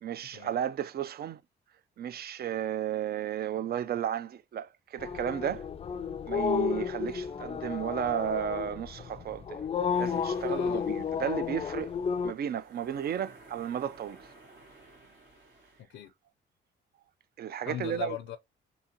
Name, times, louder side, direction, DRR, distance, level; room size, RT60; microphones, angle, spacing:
voice 1, 0.0-1.4 2.0-5.7 6.3-9.6 10.0-11.9 12.2-14.3 17.4-18.2, right 9 dB, 50° right, 0.5 m, -33 dB
sound 1, 5.0-12.3, left 6 dB, 30° left, 0.4 m, -32 dB
sound 2, 9.9-15.8, right 2 dB, 80° right, 2.1 m, -56 dB
voice 2, 10.5-10.9 15.8-16.1 17.6-18.4, left 11 dB, 90° left, 0.6 m, -39 dB
3.9 x 2.8 x 2.9 m
cardioid pair, 90°, 20 cm